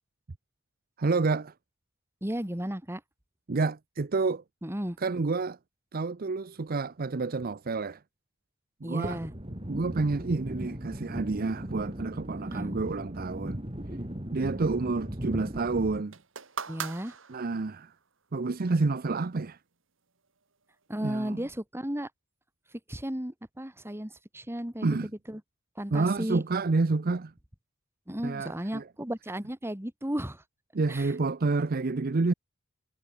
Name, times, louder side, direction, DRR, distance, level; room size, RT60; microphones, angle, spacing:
voice 1, 1.0-1.5 3.5-4.4 5.0-5.6 5.9-8.0 8.8-9.2 9.7-13.6 14.3-16.1 17.3-17.9 18.3-19.6 21.0-21.4 24.8-25.1 25.9-27.3 28.2-28.8 30.7-32.3, right 3 dB, 45° right, 0.6 m, -29 dB
voice 2, 2.2-3.0 4.6-5.0 8.8-9.3 11.1-11.2 12.4-12.8 15.3-15.4 16.7-17.2 20.9-22.1 22.9-25.4 25.8-26.4 28.1-30.4 30.9-31.1, equal, 10° right, 2.5 m, -34 dB
sound 1, 9.0-16.0, equal, 30° right, 3.1 m, -38 dB
sound 2, 16.1-17.9 18.8-18.9, right 6 dB, 70° right, 2.8 m, -39 dB
head